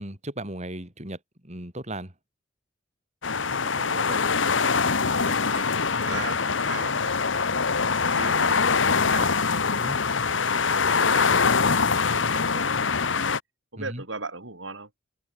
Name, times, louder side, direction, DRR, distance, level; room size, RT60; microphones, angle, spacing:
voice 1, 0.0-2.1 9.7-10.0 13.8-14.0, right 1 dB, 35° right, 7.5 m, -36 dB
sound 1, 3.2-13.4, left 5 dB, 85° left, 1.4 m, -23 dB
voice 2, 3.5-4.4 4.9-7.2 8.1-9.6 10.1-12.7 13.0-13.3 13.7-14.9, right 3 dB, 80° right, 6.5 m, -39 dB
head